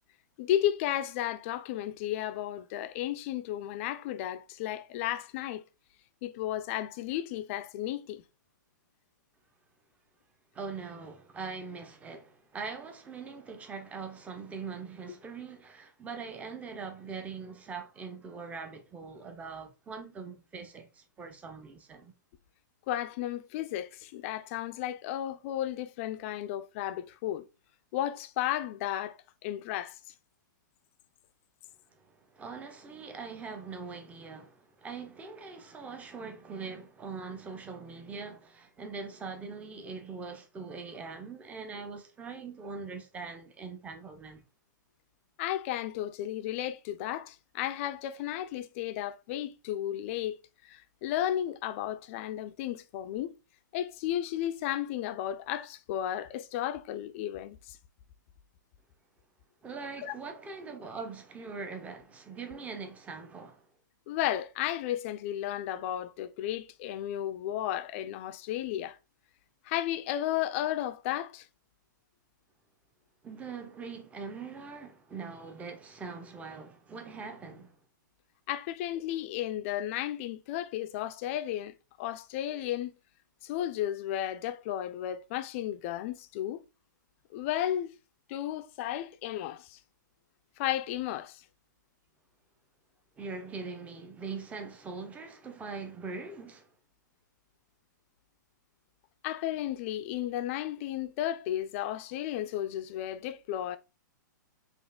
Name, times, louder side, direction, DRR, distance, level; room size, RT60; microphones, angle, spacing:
voice 1, 0.4-5.6 6.2-8.2 22.9-27.5 27.9-30.0 45.4-53.3 53.7-57.8 60.0-60.1 64.1-69.0 69.7-71.5 78.5-82.9 83.4-86.6 87.3-87.9 88.3-89.8 90.6-91.4 99.2-103.8, left 12 dB, 40° left, 0.4 m, -33 dB
voice 2, 10.5-22.1 32.0-32.1 32.3-44.4 59.6-63.7 73.2-77.8 93.2-96.7, right 4 dB, 15° right, 0.6 m, -42 dB
5.3 x 2.4 x 2.2 m
hypercardioid pair, 125°, 11 cm